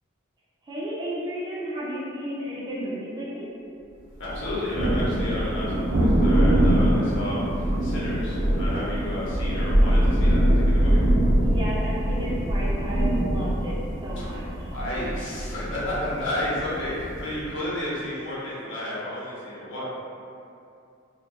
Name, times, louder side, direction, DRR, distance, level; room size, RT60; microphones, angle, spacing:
voice 1, 0.7-3.5 11.4-13.8 14.0-14.5, equal, 20° right, -7 dB, 0.4 m, -33 dB
voice 2, 4.2-11.0 14.2-14.3 14.7-19.8, left 1 dB, 65° left, -8 dB, 0.7 m, -32 dB
Thunder, 4.3-17.5, right 1 dB, 65° right, 0.6 m, -23 dB
2.2 x 2.2 x 2.7 m, 2.5 s
head